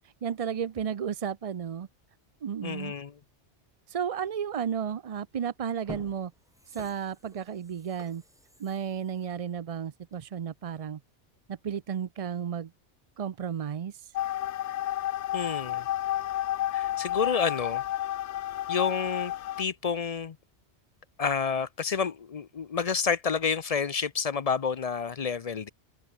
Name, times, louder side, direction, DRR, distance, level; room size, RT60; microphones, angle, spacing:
voice 1, 0.2-1.9 2.4-2.9 3.9-6.3 6.7-8.2 8.6-11.0 11.5-12.7 13.2-14.1, right 8 dB, 50° right, 0.4 m, -33 dB
voice 2, 2.6-3.2 15.3-15.9 16.7-17.8 18.7-19.3 19.6-20.4 21.2-25.7, left 6 dB, 45° left, 0.5 m, -29 dB
sound 1, 5.1-5.2 5.7-10.4 10.8-10.9, equal, 5° right, 3.6 m, -50 dB
sound 2, 14.1-19.6, left 13 dB, 85° left, 0.9 m, -31 dB
open air
omnidirectional pair, 1.2 m